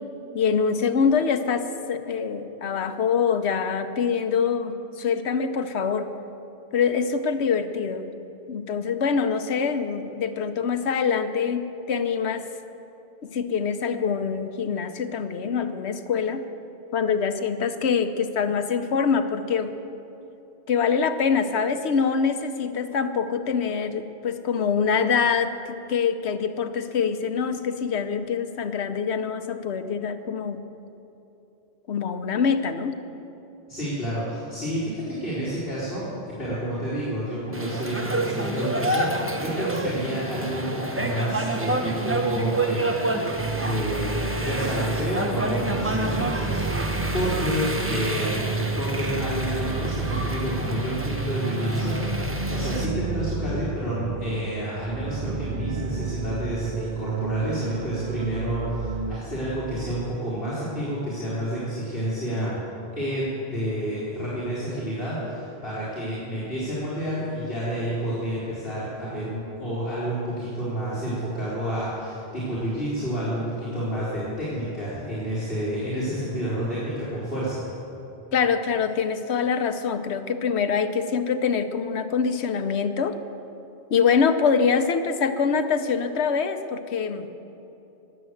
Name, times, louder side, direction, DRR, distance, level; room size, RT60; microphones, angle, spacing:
voice 1, 0.3-6.1 6.7-8.0 8.5-12.5 13.2-16.4 16.9-19.7 20.7-25.6 25.9-30.6 31.9-33.0 78.3-83.2 83.9-87.3, left 6 dB, 90° left, 9 dB, 1.1 m, -24 dB
voice 2, 33.7-43.1 43.6-48.4 48.8-62.5 62.9-77.7, equal, 65° left, -10 dB, 3.7 m, -29 dB
sound 1, 37.5-52.9, right 1 dB, 15° right, 0.8 m, -29 dB
sound 2, 43.3-59.2, right 4 dB, 45° right, 0.8 m, -31 dB
20.0 x 7.8 x 7.8 m, 3.0 s
omnidirectional pair, 1.1 m